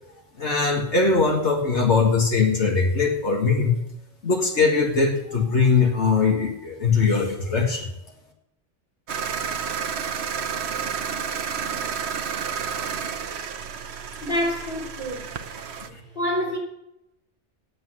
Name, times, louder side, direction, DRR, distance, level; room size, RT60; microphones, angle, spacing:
voice 1, 0.4-3.8 4.2-7.9 15.9-16.0, left 4 dB, 75° left, 1 dB, 2.1 m, -21 dB
sound 1, 9.1-15.9, right 7 dB, 65° right, 1.1 m, -30 dB
voice 2, 14.2-15.7 16.1-16.6, equal, 50° left, 0 dB, 4.2 m, -27 dB
9.0 x 8.1 x 9.4 m, 0.84 s
omnidirectional pair, 1.2 m